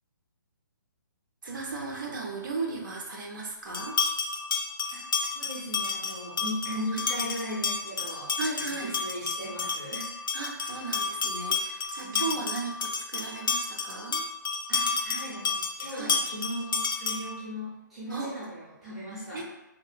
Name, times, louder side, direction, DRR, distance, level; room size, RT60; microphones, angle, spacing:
voice 1, 1.4-4.0 6.9-7.0 8.4-9.0 10.3-14.2 15.9-16.2 18.1-18.3 19.3-19.4, right 3 dB, 80° right, -1 dB, 0.6 m, -35 dB
sound 1, 3.7-17.4, left 4 dB, 85° left, 0.4 m, -31 dB
voice 2, 5.3-8.3 8.6-10.1 12.0-12.2 14.7-19.4, equal, ahead, -13 dB, 0.5 m, -37 dB
2.8 x 2.1 x 2.4 m, 0.95 s
hypercardioid pair, 170°, 11 cm